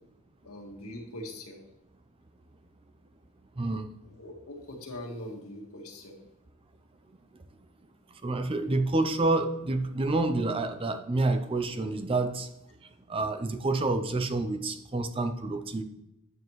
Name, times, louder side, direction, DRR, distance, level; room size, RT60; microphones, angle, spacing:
voice 1, 0.4-1.6 4.0-6.2, left 1 dB, 85° left, 0 dB, 1.8 m, -42 dB
voice 2, 3.6-3.9 8.2-12.5 13.1-15.8, right 2 dB, 25° right, 9 dB, 0.5 m, -28 dB
9.3 x 7.5 x 3.1 m, 0.83 s
head